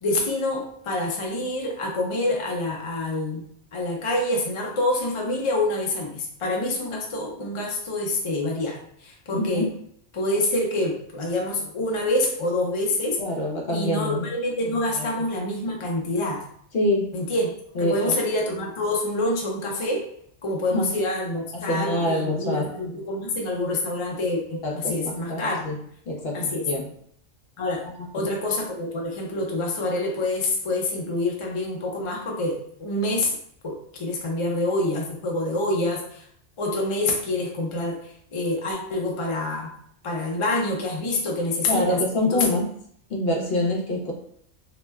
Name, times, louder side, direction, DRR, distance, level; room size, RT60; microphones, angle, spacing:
voice 1, 0.0-3.5 3.7-9.7 10.1-13.2 13.7-16.4 17.1-17.5 17.8-20.1 20.4-25.6 26.3-26.7 27.6-27.9 28.1-33.3 33.6-36.2 36.6-39.7 40.0-42.4, left 1 dB, 45° left, 0 dB, 0.4 m, -26 dB
voice 2, 9.3-9.7 13.2-14.3 14.7-15.1 16.7-17.1 17.8-18.2 20.7-20.9 21.5-22.7 24.6-25.8 26.1-26.9 28.2-28.3 41.7-42.7 43.1-44.1, left 1 dB, 60° left, 0 dB, 0.8 m, -25 dB
2.9 x 2.1 x 3.3 m, 0.66 s
omnidirectional pair, 1.2 m